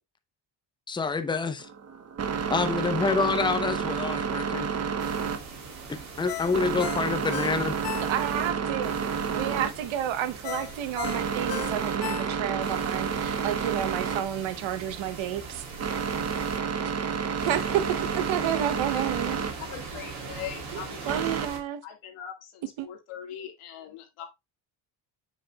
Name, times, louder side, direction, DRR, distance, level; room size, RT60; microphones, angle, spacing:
voice 1, 0.9-1.7 2.5-4.8 6.2-7.7, left 4 dB, 10° left, 0.7 m, -27 dB
sound 1, 1.6-21.5, right 6 dB, 30° right, 0.9 m, -31 dB
sound 2, 5.0-8.5 8.8-12.0 12.6-16.6 17.4-21.6, right 4 dB, 80° right, 3.2 m, -41 dB
Ringtone, 6.3-8.5 8.9-9.0 10.4-12.7 13.1-13.2, left 14 dB, 55° left, 0.7 m, -36 dB
voice 2, 8.0-15.6 17.5-19.4 20.7-21.8 22.8-22.9, right 11 dB, 65° right, 1.0 m, -31 dB
voice 3, 19.7-21.2 21.8-24.3, left 9 dB, 85° left, 2.1 m, -41 dB
7.5 x 5.8 x 2.3 m
cardioid pair, 115°, 49 cm